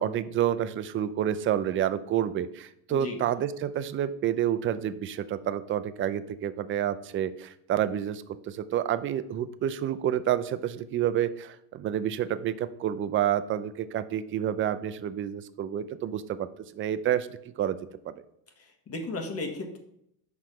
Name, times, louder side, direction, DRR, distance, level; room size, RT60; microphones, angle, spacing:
voice 1, 0.0-16.5 16.7-17.3 17.6-17.8 18.1-18.2, right 10 dB, 30° right, 13 dB, 0.4 m, -29 dB
voice 2, 18.6-19.8, left 2 dB, 30° left, 3 dB, 1.4 m, -35 dB
5.7 x 4.7 x 4.9 m, 0.74 s
supercardioid pair, 110°, 46 cm